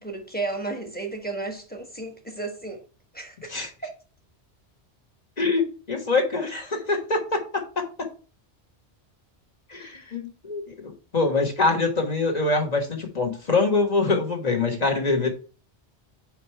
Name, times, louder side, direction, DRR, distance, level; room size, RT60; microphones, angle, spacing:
voice 1, 0.0-2.8 3.1-3.6 3.8-3.9, right 3 dB, 10° left, 1.0 m, -33 dB
voice 2, 5.4-8.1 9.7-15.3, left 3 dB, 40° left, 1.3 m, -24 dB
4.9 x 4.7 x 4.4 m
omnidirectional pair, 1.1 m